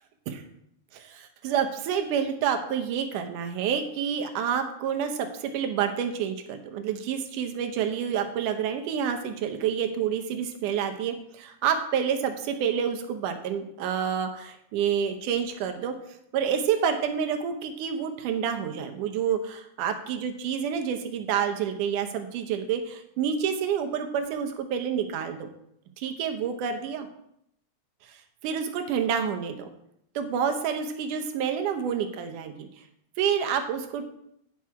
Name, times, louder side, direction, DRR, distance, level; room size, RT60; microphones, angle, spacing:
voice 1, 0.9-16.0 16.3-25.5 26.0-27.1 28.1-29.7 30.2-32.7 33.2-34.1, right 8 dB, 90° right, 7 dB, 2.4 m, -28 dB
9.5 x 6.0 x 4.7 m, 0.74 s
omnidirectional pair, 3.5 m